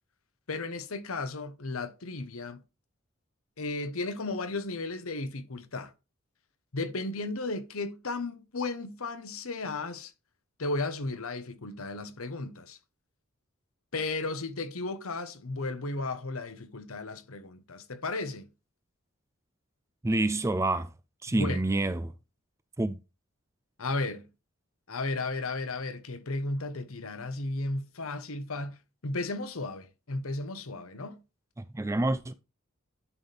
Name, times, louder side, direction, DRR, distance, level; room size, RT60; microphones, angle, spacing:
voice 1, 0.5-2.6 3.6-5.9 6.7-10.1 10.6-12.8 13.9-18.5 21.3-21.6 23.8-24.3 24.9-31.2, left 2 dB, 75° left, 1.0 m, -34 dB
voice 2, 20.0-20.9 21.2-22.1 22.8-23.0 31.6-32.3, right 2 dB, 15° right, 0.4 m, -28 dB
11.0 x 4.3 x 3.4 m
head